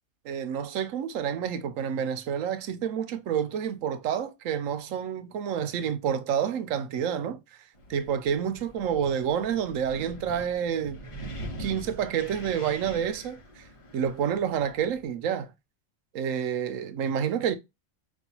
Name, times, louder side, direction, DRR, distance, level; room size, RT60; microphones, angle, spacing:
voice 1, 0.2-7.4 7.9-11.0 11.6-13.6 13.9-15.5 16.1-17.5, right 8 dB, 85° right, 1.0 m, -29 dB
Wind, 7.7-15.1, right 1 dB, 30° left, 0.7 m, -43 dB
5.3 x 2.3 x 2.8 m
omnidirectional pair, 1.3 m